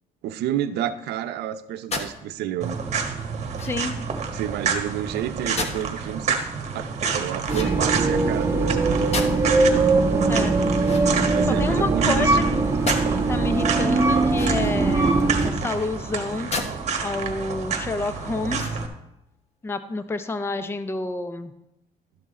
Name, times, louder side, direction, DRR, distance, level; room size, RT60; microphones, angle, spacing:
voice 1, 0.2-2.8 4.3-6.4 6.7-9.4 10.0-10.6 11.3-12.4, right 11 dB, 75° right, 10 dB, 0.7 m, -30 dB
sound 1, 1.9-2.1 3.5-4.0 5.6-5.9 7.4-8.1 9.1-9.6 10.8-11.7 12.9-13.1 14.3-14.9 16.5-16.7 17.2-17.3 18.5-19.0, left 3 dB, 40° left, 1.1 m, -32 dB
sound 2, 2.6-18.9, right 5 dB, 40° right, 1.4 m, -29 dB
voice 2, 3.6-3.9 10.3-10.6 11.6-12.3 13.1-16.5 17.0-18.7 19.6-21.5, left 3 dB, 15° left, 10 dB, 0.5 m, -29 dB
sound 3, 7.5-15.5, right 3 dB, 15° right, 1.3 m, -21 dB
12.0 x 6.0 x 4.2 m, 0.86 s
cardioid pair, 110°, 17 cm